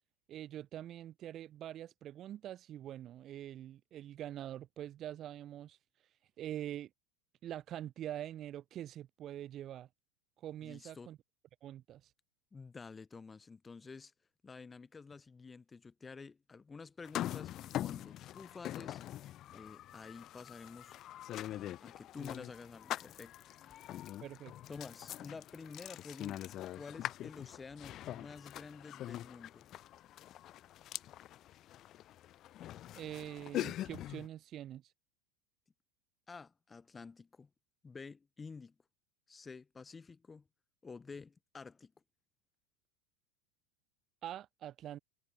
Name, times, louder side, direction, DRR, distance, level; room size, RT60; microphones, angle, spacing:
voice 1, 0.3-5.8 6.4-6.9 7.4-9.9 10.4-11.2 11.6-12.1 24.2-24.5 32.9-34.8 44.2-45.0, right 12 dB, 35° right, 1.1 m, -44 dB
voice 2, 10.6-11.1 12.5-14.1 14.4-19.0 19.5-20.9 21.5-24.1 24.7-29.7 36.3-37.5 37.8-38.7 39.3-40.4 40.8-41.9, left 4 dB, 15° left, 3.8 m, -50 dB
sound 1, 17.0-34.3, left 13 dB, 40° left, 1.8 m, -43 dB
supercardioid pair, 125°, 0 cm